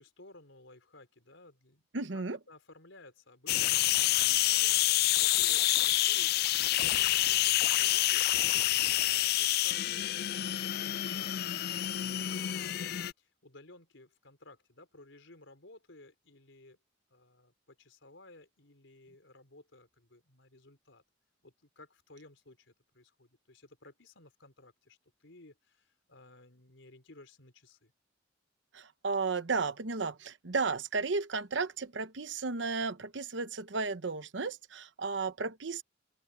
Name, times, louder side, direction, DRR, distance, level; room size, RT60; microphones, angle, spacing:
voice 1, 0.0-9.9 10.5-12.3 12.5-16.8 17.1-21.0 21.4-27.9, left 2 dB, 90° left, 4.1 m, -57 dB
voice 2, 1.9-2.4 28.7-35.8, right 4 dB, 70° right, 1.0 m, -34 dB
sound 1, 3.5-13.1, left 15 dB, 55° left, 0.3 m, -28 dB
open air
head